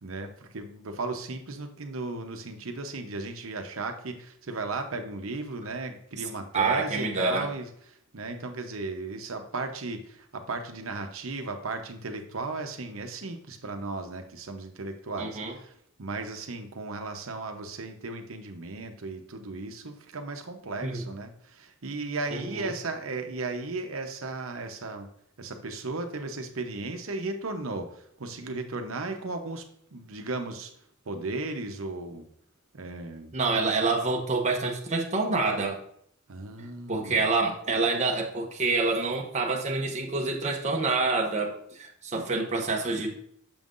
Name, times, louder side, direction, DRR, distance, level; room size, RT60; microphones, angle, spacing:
voice 1, 0.0-25.1 25.4-29.6 29.9-30.7 31.1-32.2 32.7-33.3 36.3-37.3, right 3 dB, 70° right, 6 dB, 0.8 m, -35 dB
voice 2, 6.5-7.5 15.2-15.5 20.8-21.0 22.3-22.7 33.3-35.8 36.9-43.2, right 3 dB, 35° right, 1 dB, 0.8 m, -27 dB
6.9 x 5.4 x 2.5 m, 0.68 s
head